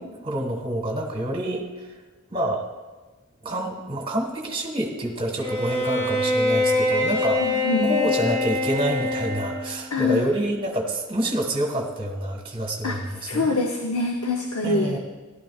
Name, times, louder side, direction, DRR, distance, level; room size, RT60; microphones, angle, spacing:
voice 1, 0.0-1.9 2.3-2.6 3.4-13.6 14.6-15.0, right 1 dB, 25° right, 1 dB, 1.5 m, -27 dB
Bowed string instrument, 5.4-9.8, left 2 dB, 30° left, 3.2 m, -24 dB
voice 2, 7.4-7.9 9.9-10.2 12.8-13.0 13.3-14.9, left 2 dB, 80° left, 2 dB, 0.8 m, -24 dB
16.0 x 11.5 x 2.4 m, 1.2 s
head